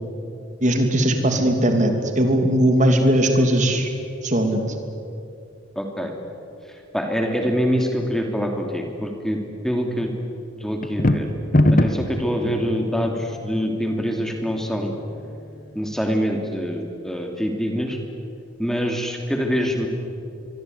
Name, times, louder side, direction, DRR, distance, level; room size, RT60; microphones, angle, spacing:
voice 1, 0.6-3.9 4.2-4.6, right 1 dB, 35° right, 5 dB, 3.0 m, -19 dB
voice 2, 5.7-6.1 6.9-9.4 9.6-10.1 10.6-11.3 11.7-14.9 15.7-18.0 18.6-19.9, equal, ahead, 2 dB, 2.9 m, -25 dB
sound 1, 10.8-12.2, left 1 dB, 40° left, 1.3 m, -17 dB
25.0 x 23.0 x 9.7 m, 2.7 s
head